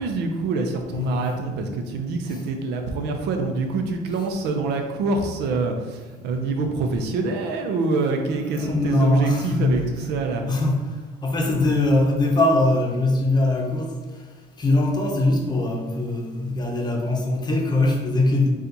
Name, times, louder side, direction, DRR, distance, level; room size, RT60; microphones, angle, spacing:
voice 1, 0.0-10.5, right 3 dB, 90° right, 4 dB, 0.6 m, -26 dB
voice 2, 0.9-1.2 8.6-9.9 10.5-10.9 11.2-14.0 14.6-18.5, left 2 dB, 25° left, 1 dB, 0.8 m, -21 dB
4.2 x 2.4 x 3.9 m, 1.3 s
cardioid pair, 110°, 17 cm